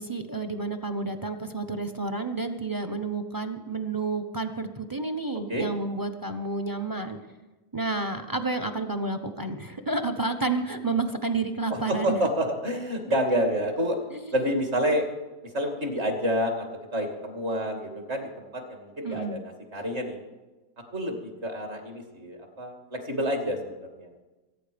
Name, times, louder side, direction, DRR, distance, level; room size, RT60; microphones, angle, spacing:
voice 1, 0.0-7.2 7.7-12.2 14.1-14.2 19.0-19.4, right 3 dB, 20° right, 7 dB, 0.7 m, -30 dB
voice 2, 11.9-14.0 14.3-15.1 15.4-16.7 16.9-20.2 20.9-24.1, equal, 40° right, 3 dB, 2.8 m, -28 dB
23.5 x 9.3 x 5.2 m, 1.2 s
omnidirectional pair, 1.7 m